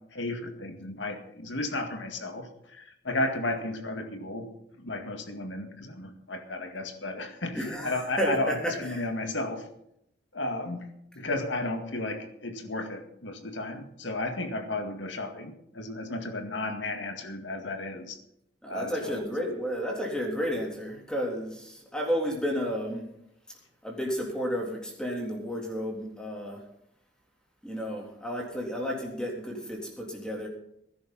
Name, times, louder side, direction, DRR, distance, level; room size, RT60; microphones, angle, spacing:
voice 1, 0.1-4.5 4.8-9.6 10.3-10.9 11.2-18.2 18.7-19.2, left 2 dB, 90° left, 6 dB, 2.1 m, -33 dB
voice 2, 7.5-9.1 18.6-23.1 23.5-23.6 23.8-26.6 27.6-30.5, equal, 5° left, -1 dB, 3.5 m, -32 dB
20.0 x 11.0 x 4.2 m, 0.77 s
head